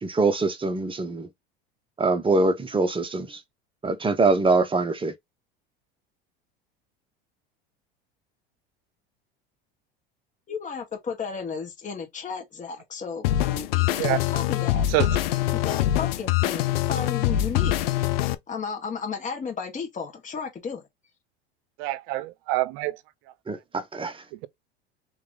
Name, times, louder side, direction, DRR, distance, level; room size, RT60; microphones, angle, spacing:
voice 1, 0.0-1.3 2.0-3.4 3.8-5.1 23.5-24.2, right 3 dB, 15° right, 1.0 m, -24 dB
voice 2, 10.5-14.8 15.6-17.8 18.5-20.8, left 5 dB, 25° left, 1.6 m, -34 dB
sound 1, 13.2-18.3, left 13 dB, 80° left, 0.6 m, -24 dB
voice 3, 21.8-23.0, right 16 dB, 60° right, 0.7 m, -26 dB
3.4 x 3.1 x 3.9 m
hypercardioid pair, 85°, 29 cm